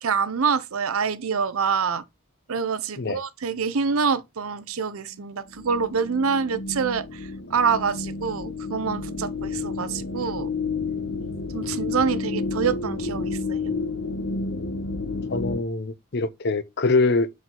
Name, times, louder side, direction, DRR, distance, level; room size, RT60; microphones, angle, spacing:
voice 1, 0.0-2.0 2.5-10.5 11.5-13.7, right 6 dB, 90° right, 0.6 m, -26 dB
sound 1, 5.5-15.6, left 4 dB, 90° left, 1.2 m, -30 dB
voice 2, 15.3-17.3, left 3 dB, 50° left, 0.6 m, -24 dB
5.8 x 5.0 x 3.8 m
head